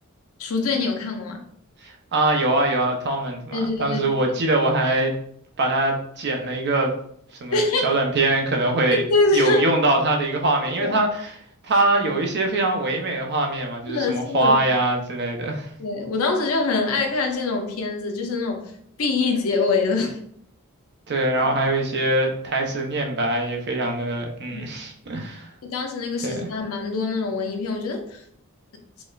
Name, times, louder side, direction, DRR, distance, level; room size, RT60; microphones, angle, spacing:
voice 1, 0.4-1.4 3.5-4.1 7.5-7.9 9.1-9.6 10.8-10.9 13.9-14.6 15.8-18.7 19.0-20.2 21.4-21.6 24.5-24.6 25.7-28.2, left 3 dB, 70° left, 3 dB, 0.5 m, -24 dB
voice 2, 1.8-5.1 5.6-6.9 7.4-9.0 9.3-11.3 11.6-15.7 21.1-25.5 26.2-26.5, right 2 dB, 50° right, 2 dB, 0.5 m, -23 dB
4.0 x 2.1 x 2.3 m, 0.66 s
head